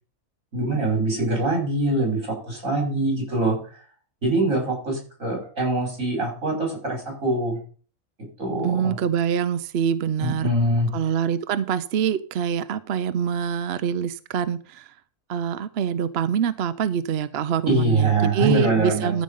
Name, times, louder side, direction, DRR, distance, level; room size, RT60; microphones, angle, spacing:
voice 1, 0.5-3.8 4.2-7.6 8.4-9.0 10.2-10.9 17.7-19.1, right 2 dB, 75° right, 1 dB, 5.7 m, -23 dB
voice 2, 8.6-10.5 10.9-14.9 15.3-19.2, right 8 dB, 60° right, 13 dB, 0.8 m, -25 dB
14.0 x 5.1 x 5.5 m, 0.40 s
omnidirectional pair, 1.4 m